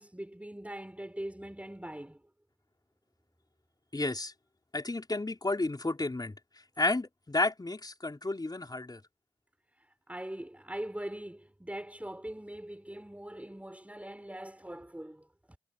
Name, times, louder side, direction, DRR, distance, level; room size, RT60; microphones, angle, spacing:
voice 1, 0.0-2.2 9.8-15.6, right 1 dB, 10° right, 6.1 m, -42 dB
voice 2, 3.9-4.3 4.7-6.3 6.8-9.0, left 2 dB, 30° left, 4.3 m, -31 dB
cardioid pair, 45°, 14 cm